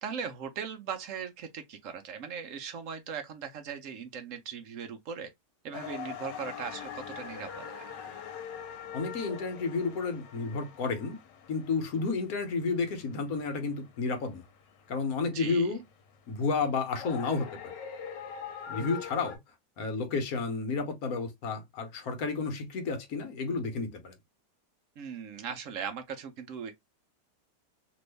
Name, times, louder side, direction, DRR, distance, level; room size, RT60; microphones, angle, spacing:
voice 1, 0.0-5.3 5.6-7.9 15.3-15.7 25.0-26.7, right 7 dB, 65° right, 0.8 m, -39 dB
sound 1, 5.7-19.4, left 7 dB, 80° left, 1.3 m, -44 dB
voice 2, 8.9-11.2 11.5-14.4 14.9-15.8 16.3-17.7 18.7-19.4 19.8-24.1, left 4 dB, 60° left, 1.2 m, -31 dB
3.0 x 2.5 x 3.2 m
omnidirectional pair, 1.9 m